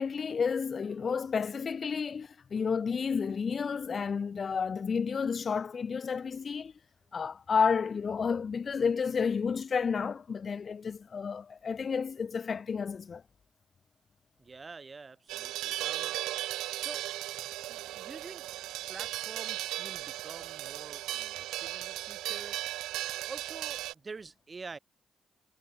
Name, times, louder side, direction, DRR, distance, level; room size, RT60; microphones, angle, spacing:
voice 1, 0.0-6.7 7.1-13.2, left 6 dB, 55° left, 3.0 m, -31 dB
voice 2, 14.4-16.1 16.8-17.1 17.7-22.6 23.3-24.8, right 4 dB, 40° right, 7.2 m, -47 dB
sound 1, 15.3-23.9, right 16 dB, 80° right, 2.5 m, -36 dB
hypercardioid pair, 40°, 0 cm